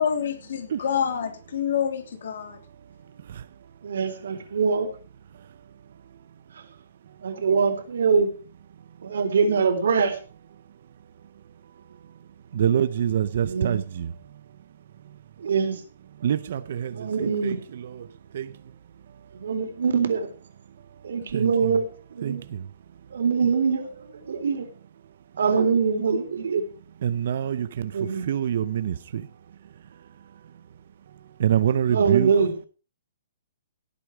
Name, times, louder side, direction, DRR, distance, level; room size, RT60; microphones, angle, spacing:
voice 1, 0.0-2.6, left 8 dB, 55° left, 3.1 m, -27 dB
voice 2, 3.8-4.9 7.2-8.3 9.0-10.2 13.4-13.8 15.4-15.8 16.9-17.6 19.3-20.3 21.0-22.4 23.1-24.7 25.4-26.6 27.8-28.3 31.9-32.5, right 5 dB, 70° right, 3.8 m, -23 dB
voice 3, 12.5-14.1 16.2-18.1 18.3-18.5 21.3-21.7 22.2-22.6 27.0-27.9 28.3-29.3 31.4-32.3, right 9 dB, 45° right, 0.6 m, -26 dB
17.5 x 8.4 x 4.8 m
hypercardioid pair, 175°, 0 cm